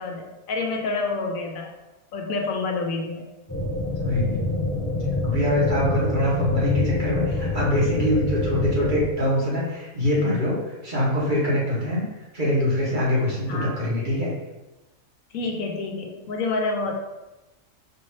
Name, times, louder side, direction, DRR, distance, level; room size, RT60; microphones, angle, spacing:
voice 1, 0.0-1.7 2.1-3.3 6.3-6.4 13.1-13.7 15.3-16.9, left 3 dB, 75° left, 2 dB, 1.1 m, -28 dB
sound 1, 3.5-9.1, left 2 dB, 20° left, 0.5 m, -26 dB
voice 2, 4.0-4.4 5.2-10.6 10.8-12.0 12.3-14.3, left 1 dB, 35° right, -6 dB, 1.3 m, -24 dB
5.1 x 2.7 x 3.2 m, 1.0 s
omnidirectional pair, 1.5 m